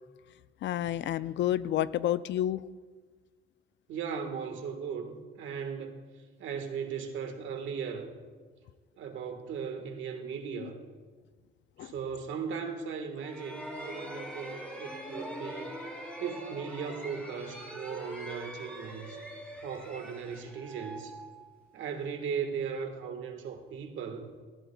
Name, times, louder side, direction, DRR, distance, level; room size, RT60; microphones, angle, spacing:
voice 1, 0.6-2.6 10.5-10.7 11.8-11.9, left 12 dB, 65° left, 16 dB, 0.4 m, -30 dB
voice 2, 3.9-6.0 6.4-8.1 9.0-10.8 11.8-15.7 16.2-19.2 19.6-21.1 21.7-24.3, right 6 dB, 75° right, 5 dB, 1.5 m, -37 dB
sound 1, 13.2-21.9, equal, 5° left, 3.2 m, -43 dB
17.5 x 14.0 x 2.3 m, 1.5 s
cardioid pair, 90°, 20 cm